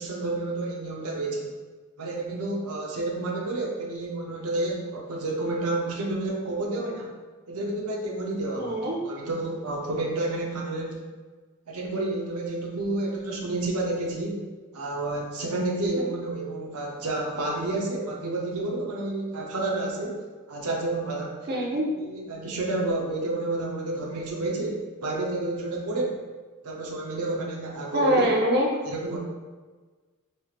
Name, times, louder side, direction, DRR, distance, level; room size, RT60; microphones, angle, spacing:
voice 1, 0.0-1.6 2.0-7.1 7.5-8.8 9.0-11.0 11.7-14.4 14.7-21.4 21.9-26.2 26.6-28.3 28.9-29.2, right 2 dB, 85° right, -1 dB, 0.7 m, -30 dB
voice 2, 8.6-9.0 21.5-21.9 27.9-28.7, equal, 50° right, -2 dB, 0.6 m, -23 dB
4.3 x 3.3 x 2.4 m, 1.4 s
head